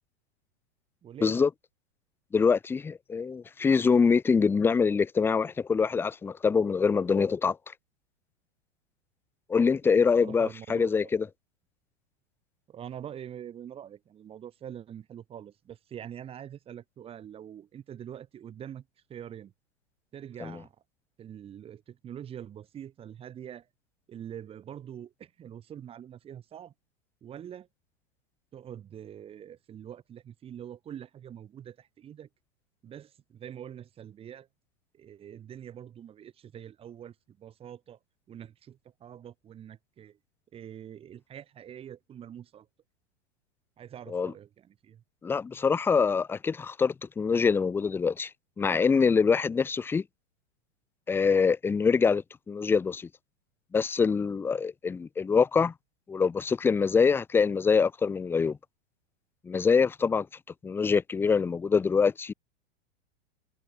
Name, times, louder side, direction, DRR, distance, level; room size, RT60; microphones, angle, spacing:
voice 1, 1.0-1.5 9.9-10.9 12.7-19.5 20.1-20.8 21.2-23.7 24.1-26.7 27.2-27.7 28.5-32.3 32.8-34.5 34.9-38.0 38.3-40.2 40.5-42.7 43.8-45.0, right 9 dB, 15° right, 3.7 m, -44 dB
voice 2, 2.3-7.6 9.5-11.3 20.4-20.6 44.1-44.3 45.2-48.3 48.6-50.0 51.1-53.1 53.7-55.7 56.1-58.6 59.4-60.3 60.6-62.3, left 5 dB, 5° left, 0.9 m, -24 dB
supercardioid pair, 170°, 35 cm